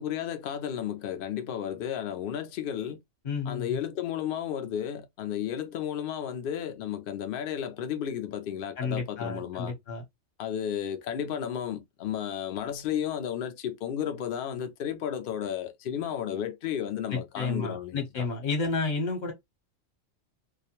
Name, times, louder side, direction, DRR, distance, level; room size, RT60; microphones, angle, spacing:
voice 1, 0.0-3.0 3.5-9.7 10.4-18.3, left 9 dB, 65° left, 0.5 m, -33 dB
voice 2, 3.2-3.8 8.8-10.0 17.1-19.3, left 4 dB, 40° left, 1.0 m, -31 dB
2.4 x 2.1 x 2.9 m
omnidirectional pair, 1.4 m